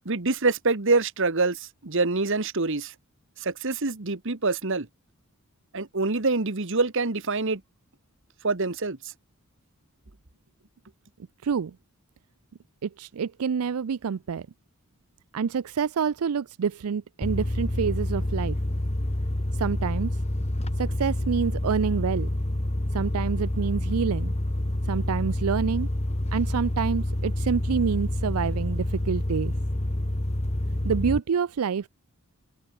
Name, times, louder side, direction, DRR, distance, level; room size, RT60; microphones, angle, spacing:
voice 1, 0.0-2.9 3.4-4.9 5.7-7.6 8.4-9.0, right 3 dB, 60° right, 1.4 m, -25 dB
voice 2, 11.4-11.7 12.8-14.5 15.3-18.6 19.6-20.1 20.8-22.3 22.9-24.3 24.8-25.9 26.3-29.5 30.8-31.9, right 6 dB, 85° right, 0.5 m, -27 dB
sound 1, 17.2-31.2, left 1 dB, 30° left, 1.5 m, -28 dB
open air
head